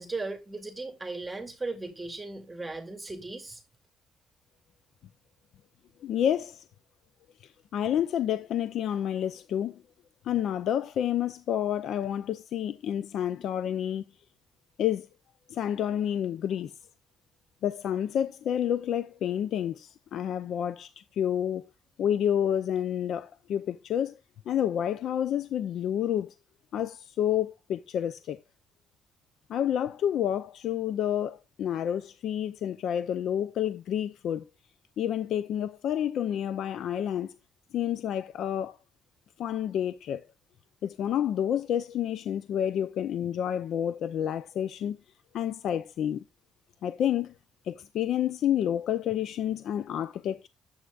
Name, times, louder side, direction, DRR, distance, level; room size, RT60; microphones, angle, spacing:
voice 1, 0.0-3.6, right 3 dB, 15° right, 2.5 m, -37 dB
voice 2, 6.0-6.6 7.4-9.8 10.2-14.1 14.8-15.1 15.5-16.7 17.6-21.7 22.0-24.2 24.5-26.3 26.7-28.4 29.5-34.4 35.0-37.4 37.7-38.8 39.4-40.2 40.8-45.0 45.3-46.2 46.8-47.3 47.6-50.5, left 10 dB, 70° left, 0.5 m, -29 dB
11.5 x 8.1 x 2.4 m
cardioid pair, 85°, 0 cm